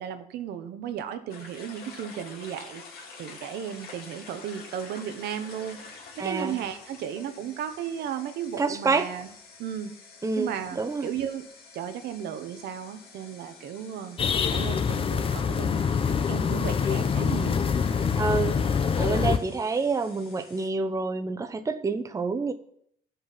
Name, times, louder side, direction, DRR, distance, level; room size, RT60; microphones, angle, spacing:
voice 1, 0.0-2.8 3.2-5.8 6.2-9.3 9.6-9.9 10.4-11.4 11.7-14.2 14.5-15.8 16.3-17.7, right 9 dB, 75° right, 1.1 m, -35 dB
sound 1, 1.3-20.7, left 4 dB, 65° left, 2.3 m, -48 dB
voice 2, 6.2-6.6 8.6-9.1 10.2-11.1 18.2-18.6 19.0-22.5, right 4 dB, 20° right, 0.8 m, -28 dB
sound 2, 14.2-19.4, left 6 dB, 30° left, 0.7 m, -25 dB
11.5 x 5.6 x 5.8 m
cardioid pair, 110°, 17 cm